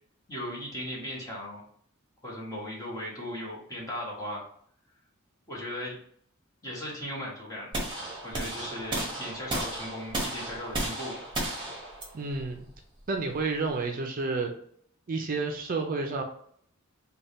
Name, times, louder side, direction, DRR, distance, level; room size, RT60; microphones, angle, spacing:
voice 1, 0.3-1.6 2.2-4.4 5.5-6.0 6.6-7.8 8.2-11.3, left 1 dB, 15° left, -4 dB, 1.2 m, -37 dB
sound 1, 7.7-13.8, right 1 dB, 25° right, 1.0 m, -34 dB
voice 2, 12.1-12.7 13.1-14.5 15.1-16.2, right 3 dB, 45° right, 3 dB, 0.4 m, -30 dB
3.4 x 2.3 x 4.1 m, 0.62 s
head